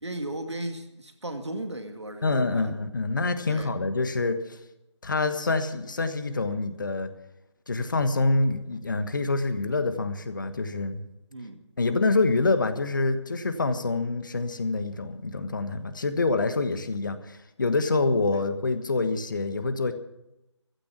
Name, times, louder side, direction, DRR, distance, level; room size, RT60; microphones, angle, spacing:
voice 1, 0.0-2.7 3.5-3.8 11.3-11.6 18.3-18.4, right 1 dB, 65° right, 6 dB, 2.1 m, -36 dB
voice 2, 2.2-4.6 5.0-7.1 7.7-11.0 11.8-19.9, left 3 dB, 40° left, 10 dB, 1.4 m, -26 dB
15.5 x 12.5 x 6.1 m, 0.86 s
figure-of-eight pair, 155°, 16 cm